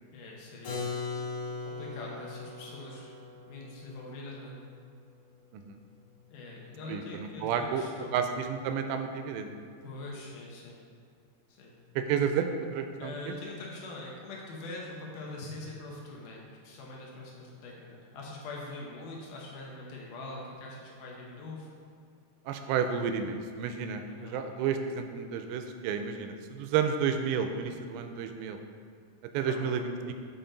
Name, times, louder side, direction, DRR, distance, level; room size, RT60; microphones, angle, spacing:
voice 1, 0.1-0.8 1.6-3.2 3.4-4.6 6.3-8.2 9.8-10.8 11.5-11.7 13.0-21.7 24.1-24.4 29.4-29.9, left 2 dB, 75° left, -3 dB, 1.9 m, -43 dB
Keyboard (musical), 0.6-6.3, left 4 dB, 60° left, 2.8 m, -40 dB
voice 2, 6.9-7.8 8.1-9.5 12.0-13.2 22.5-28.6 29.3-30.1, right 7 dB, 90° right, 6 dB, 2.7 m, -31 dB
7.6 x 4.2 x 3.9 m, 2.3 s
omnidirectional pair, 4.8 m